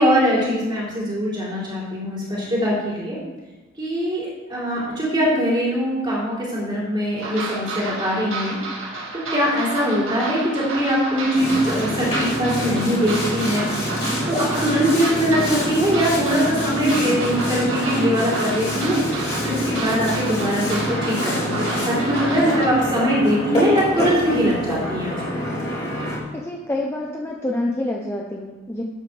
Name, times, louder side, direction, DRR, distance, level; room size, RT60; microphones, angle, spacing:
voice 1, 0.0-3.2 3.8-8.6 9.1-13.7 14.3-25.4, equal, 20° right, -7 dB, 3.4 m, -22 dB
sound 1, 7.2-22.7, right 3 dB, 65° right, 2.3 m, -31 dB
Boat Water vehicle, 11.3-26.2, equal, 30° left, 3.3 m, -26 dB
voice 2, 26.3-28.8, left 1 dB, 10° left, -1 dB, 0.6 m, -27 dB
12.0 x 8.5 x 3.3 m, 1.2 s
head